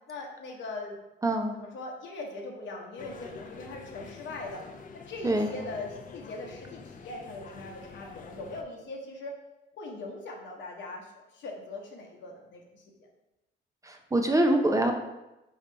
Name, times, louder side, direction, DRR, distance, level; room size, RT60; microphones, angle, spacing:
voice 1, 0.1-1.0 1.5-4.6 4.9-9.3 9.8-13.1, left 2 dB, 70° left, 0 dB, 1.0 m, -41 dB
voice 2, 1.2-1.5 5.2-5.5 13.8-14.9, right 1 dB, 15° right, 3 dB, 0.5 m, -24 dB
sound 1, 3.0-8.6, left 5 dB, 45° left, 0.5 m, -47 dB
3.9 x 2.9 x 4.5 m, 0.96 s
cardioid pair, 90°, 20 cm